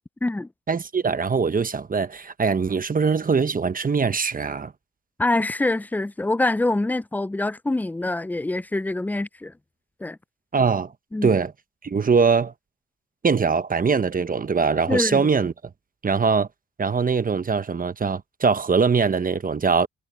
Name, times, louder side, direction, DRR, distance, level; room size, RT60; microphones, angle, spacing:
voice 1, 0.7-4.7 10.5-10.9 11.2-11.5 11.8-12.5 13.2-15.5 16.0-16.5 16.8-19.9, right 5 dB, 30° right, 1.1 m, -22 dB
voice 2, 5.2-9.5 10.0-10.2 11.1-11.4 14.9-15.3, left 2 dB, 5° left, 0.4 m, -25 dB
cardioid pair, 90°, 30 cm